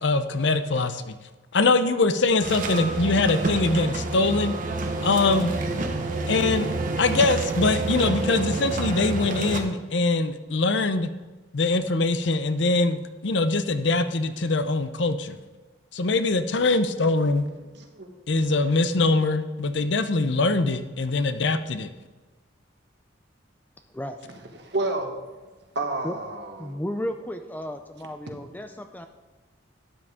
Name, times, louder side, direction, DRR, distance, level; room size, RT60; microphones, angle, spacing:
voice 1, 0.0-1.2 1.5-4.5 5.0-5.5 6.3-6.7 7.0-11.1 11.5-15.4 15.9-17.4 18.3-21.9, left 3 dB, 65° left, 11 dB, 0.7 m, -23 dB
sound 1, 2.4-9.6, right 2 dB, 45° right, 1.1 m, -28 dB
voice 2, 17.7-18.1 18.4-18.7 24.6-25.1 25.7-26.8, right 2 dB, 60° right, 4 dB, 1.6 m, -30 dB
voice 3, 26.6-29.1, equal, 10° left, 7 dB, 0.4 m, -33 dB
12.5 x 9.6 x 3.6 m, 1.2 s
head